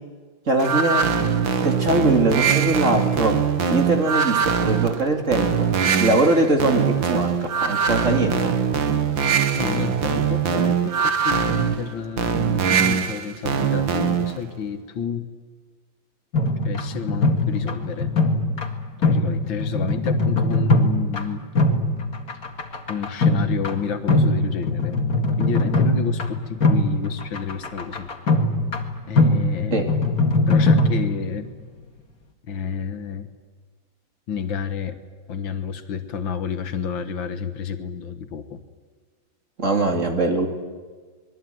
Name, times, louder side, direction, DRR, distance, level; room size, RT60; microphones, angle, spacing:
voice 1, 0.5-1.1 1.6-3.4 3.7-5.7 6.0-8.5 29.7-29.9 39.6-40.5, right 2 dB, 40° right, 4 dB, 3.1 m, -21 dB
sound 1, 0.6-14.4, right 7 dB, 85° right, 2.2 m, -22 dB
voice 2, 9.5-15.3 16.6-18.1 19.0-21.4 22.9-25.0 25.4-28.1 29.1-29.9 30.5-31.5 32.5-33.3 34.3-35.0 35.3-38.6, left 7 dB, 85° left, 9 dB, 2.2 m, -30 dB
sound 2, 16.3-31.4, left 2 dB, 50° left, 2.7 m, -21 dB
26.5 x 21.5 x 9.4 m, 1.5 s
omnidirectional pair, 2.0 m